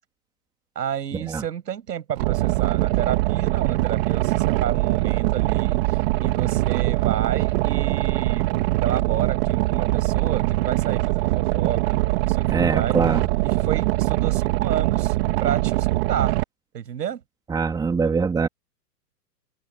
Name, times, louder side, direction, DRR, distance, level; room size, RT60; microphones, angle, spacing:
voice 1, 0.8-13.0 13.5-16.4 16.7-17.2, right 9 dB, 75° right, 7.3 m, -31 dB
Boat Water vehicle, 2.2-16.4, right 20 dB, 35° right, 2.1 m, -22 dB
voice 2, 12.5-13.3 17.5-18.5, right 5 dB, 10° right, 3.0 m, -23 dB
hypercardioid pair, 150°, 49 cm